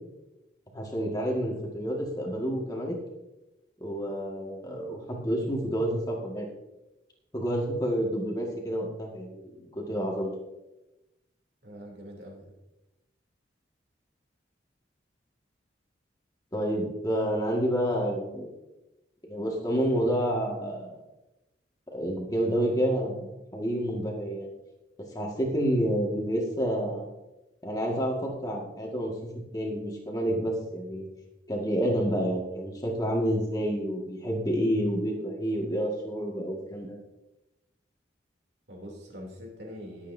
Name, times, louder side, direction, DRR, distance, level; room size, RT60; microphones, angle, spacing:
voice 1, 0.7-3.0 3.8-6.5 7.3-10.3 16.5-18.5 19.2-20.9 21.9-24.5 25.1-27.1 27.6-31.1 31.5-37.0, equal, 20° left, -1 dB, 1.9 m, -29 dB
voice 2, 11.6-12.5 38.7-40.1, equal, 65° right, -1 dB, 3.1 m, -43 dB
20.5 x 8.4 x 2.7 m, 0.98 s
head